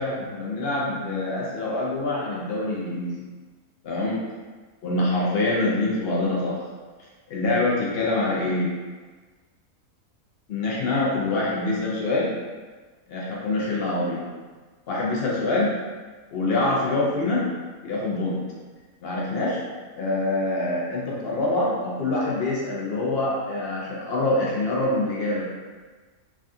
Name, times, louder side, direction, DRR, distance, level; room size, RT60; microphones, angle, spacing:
voice 1, 0.0-3.2 3.8-4.2 4.8-6.7 7.3-8.7 10.5-12.3 13.1-14.3 14.9-15.7 16.3-17.4 17.8-18.4 19.0-19.6 20.0-25.4, left 2 dB, 60° left, -5 dB, 0.6 m, -25 dB
3.5 x 2.3 x 2.6 m, 1.4 s
omnidirectional pair, 1.6 m